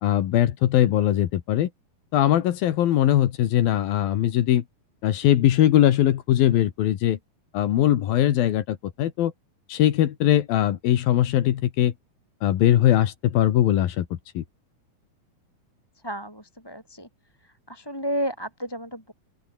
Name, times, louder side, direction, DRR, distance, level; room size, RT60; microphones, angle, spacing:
voice 1, 0.0-1.7 2.1-4.6 5.0-7.2 7.5-9.3 9.7-11.9 12.4-14.4, left 12 dB, 75° left, 3.2 m, -21 dB
voice 2, 16.0-17.1 17.7-19.1, equal, 5° left, 6.0 m, -31 dB
open air
omnidirectional pair, 4.3 m